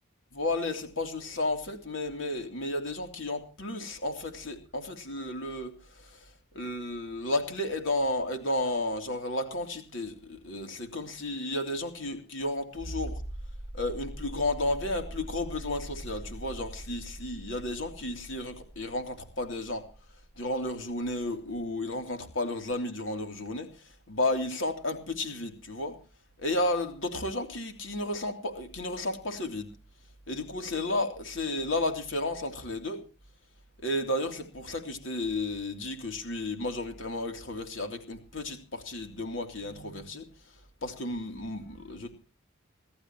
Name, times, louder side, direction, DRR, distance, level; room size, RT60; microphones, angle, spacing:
voice 1, 0.3-5.7 6.0-6.3 6.5-13.2 13.7-19.8 20.4-23.7 24.1-26.0 26.4-29.7 30.3-33.0 33.8-40.2 40.8-42.1, left 2 dB, 65° left, 5 dB, 3.2 m, -32 dB
sound 1, 12.8-21.2 22.7-22.8, right 1 dB, 35° left, 5.7 m, -42 dB
25.5 x 13.0 x 3.0 m, 0.36 s
head